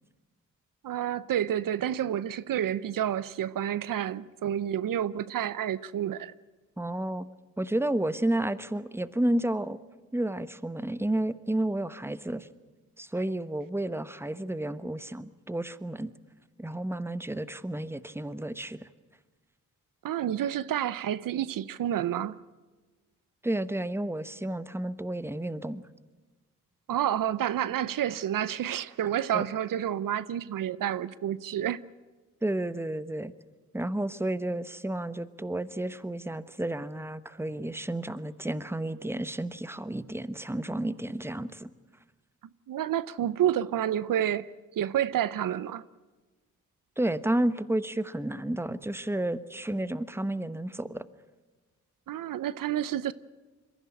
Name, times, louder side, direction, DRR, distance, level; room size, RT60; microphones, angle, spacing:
voice 1, 0.8-6.3 20.0-22.4 26.9-31.8 42.7-45.9 52.1-53.1, right 10 dB, 75° right, 0.7 m, -29 dB
voice 2, 6.8-7.3 7.6-9.8 10.1-12.5 13.0-16.1 16.6-18.9 23.4-25.8 29.3-29.4 32.4-33.3 33.7-41.7 47.0-51.1, right 1 dB, 5° right, 1.1 m, -31 dB
22.5 x 15.5 x 9.9 m
cardioid pair, 55°, 33 cm